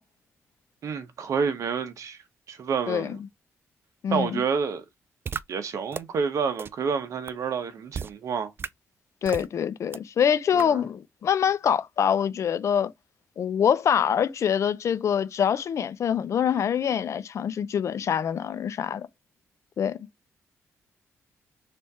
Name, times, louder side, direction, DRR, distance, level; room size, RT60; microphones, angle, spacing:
voice 1, 0.8-2.2 2.5-3.2 4.1-4.8 5.5-8.5 10.5-10.8, right 6 dB, 70° right, 1.1 m, -29 dB
voice 2, 2.9-3.2 4.0-4.4 9.2-12.9 13.4-19.1 19.8-20.1, left 8 dB, 65° left, 0.6 m, -25 dB
sound 1, 5.3-5.4 5.9-6.0 6.6-6.7 7.3-7.4 7.9-8.1 8.6-8.7 9.3-9.5 9.9-10.0 10.6-10.7, right 6 dB, 45° right, 0.4 m, -32 dB
3.5 x 3.2 x 4.1 m
cardioid pair, 95°, 5 cm